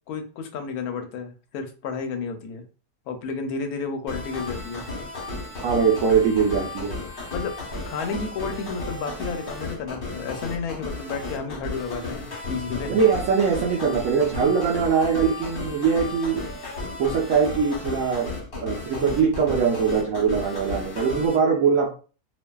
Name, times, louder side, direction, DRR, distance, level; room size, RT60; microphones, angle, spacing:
voice 1, 0.1-2.6 3.1-4.8 7.3-7.5 7.9-13.0, left 5 dB, 70° left, 6 dB, 0.9 m, -32 dB
sound 1, 4.1-21.4, left 2 dB, 40° left, 0.9 m, -34 dB
voice 2, 5.6-7.0 12.9-16.4 17.0-18.3 18.6-21.9, right 6 dB, 65° right, -3 dB, 0.8 m, -22 dB
2.6 x 2.4 x 2.2 m, 0.36 s
omnidirectional pair, 1.9 m